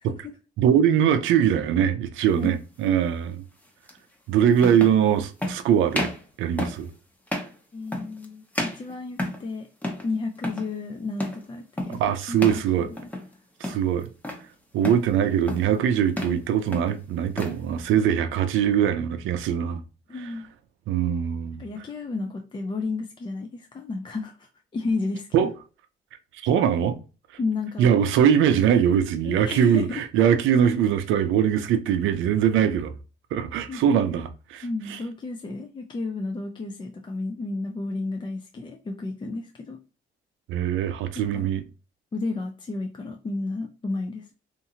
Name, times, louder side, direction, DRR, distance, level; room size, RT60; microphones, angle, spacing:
voice 1, 0.6-3.4 4.3-6.1 6.4-6.9 11.9-12.9 13.6-14.1 14.7-19.8 20.9-21.6 25.3-25.5 26.4-27.0 27.8-32.9 33.3-34.6 34.9-35.0 40.5-41.6, right 9 dB, 85° right, 0.4 m, -22 dB
sound 1, 2.4-2.6 3.9-4.0 4.6-5.0 5.4-5.6 5.9-6.2 6.6-6.9 7.3-7.6 7.9-8.3 8.5-9.5 9.8-10.1 10.4-10.7 11.2-11.5 11.8-12.0 12.4-12.7 13.0-13.3 13.6-14.4 14.8-15.1 15.5-15.8 16.1-16.4 16.7-17.6, left 1 dB, 10° left, 0.7 m, -31 dB
voice 2, 7.7-9.7 10.0-12.4 12.8-13.1 20.1-20.5 21.6-25.5 27.4-27.9 29.2-30.1 33.7-34.0 34.6-39.8 41.1-41.5 42.1-44.3, left 3 dB, 25° left, 0.4 m, -32 dB
2.7 x 2.5 x 2.7 m
cardioid pair, 90°, 20 cm